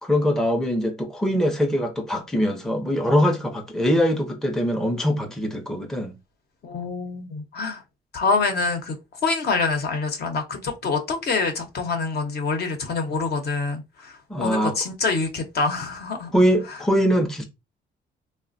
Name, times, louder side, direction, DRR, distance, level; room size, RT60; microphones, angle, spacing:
voice 1, 0.0-6.1 14.3-14.7 16.3-17.4, equal, ahead, 0.5 m, -22 dB
voice 2, 6.6-7.8 8.1-9.0 9.2-16.3 16.7-16.8, left 4 dB, 55° left, 0.8 m, -26 dB
3.2 x 2.1 x 2.5 m
cardioid pair, 90°, 20 cm